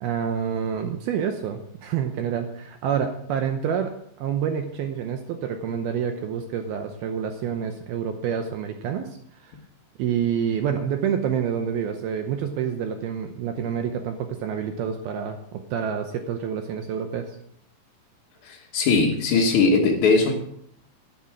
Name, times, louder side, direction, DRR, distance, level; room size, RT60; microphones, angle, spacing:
voice 1, 0.0-3.9 4.2-9.1 9.4-9.5 10.0-17.3, right 8 dB, 80° right, 6 dB, 2.2 m, -28 dB
voice 2, 18.4-20.3, left 4 dB, 80° left, 0 dB, 1.7 m, -20 dB
11.5 x 10.0 x 4.7 m, 0.68 s
omnidirectional pair, 5.5 m